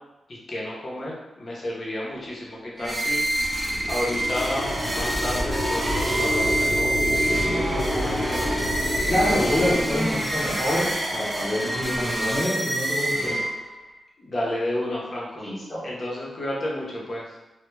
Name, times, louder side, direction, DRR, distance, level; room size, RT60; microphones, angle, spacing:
voice 1, 0.3-3.3 3.9-8.5 14.2-15.5 15.8-17.3, left 1 dB, 45° left, -5 dB, 0.7 m, -31 dB
sound 1, 2.8-13.8, right 1 dB, 15° right, 0.5 m, -27 dB
sound 2, 3.6-9.7, equal, 80° left, 0.8 m, -28 dB
voice 2, 9.0-13.4 15.4-15.8, left 1 dB, 15° left, -10 dB, 0.8 m, -26 dB
2.2 x 2.1 x 3.1 m, 1.0 s
wide cardioid pair, 100°, 0 cm